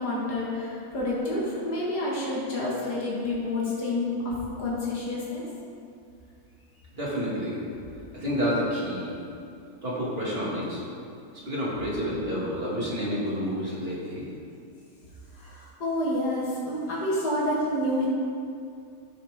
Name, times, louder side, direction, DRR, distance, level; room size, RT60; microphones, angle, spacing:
voice 1, 0.0-5.5 15.3-18.1, left 1 dB, 80° left, -6 dB, 2.3 m, -29 dB
voice 2, 6.9-7.6 8.1-9.2 9.8-10.8 11.5-14.2, equal, 35° right, -7 dB, 2.3 m, -29 dB
13.5 x 5.8 x 3.6 m, 2.4 s
omnidirectional pair, 1.7 m